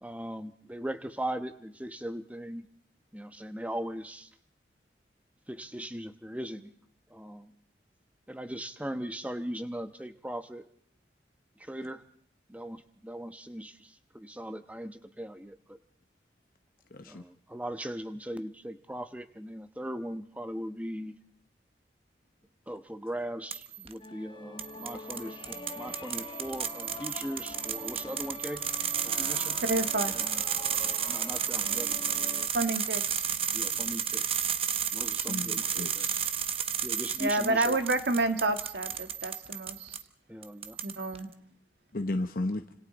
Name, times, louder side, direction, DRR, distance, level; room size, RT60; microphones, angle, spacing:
voice 1, 0.0-2.7 3.1-4.3 5.5-6.7 7.1-7.5 8.3-10.6 11.7-12.0 12.5-13.7 14.1-15.8 17.1-21.1 22.7-28.6 29.1-29.6 30.1-30.4 31.0-32.1 33.5-34.5 34.9-35.6 35.9-36.0 36.8-37.8 40.3-40.8, right 1 dB, 10° right, 9 dB, 1.1 m, -39 dB
voice 2, 16.9-17.2 35.3-36.3 41.9-42.6, left 2 dB, 50° left, 7 dB, 0.9 m, -34 dB
sound 1, 23.5-23.9 24.6-40.0 40.4-41.2, right 8 dB, 30° right, 1.1 m, -32 dB
sound 2, 24.0-32.5, left 2 dB, 30° left, 1.1 m, -44 dB
voice 3, 29.6-30.2 32.5-33.3 37.2-40.0 40.8-41.3, right 2 dB, 70° right, 8 dB, 1.7 m, -29 dB
29.5 x 26.0 x 4.1 m, 0.65 s
head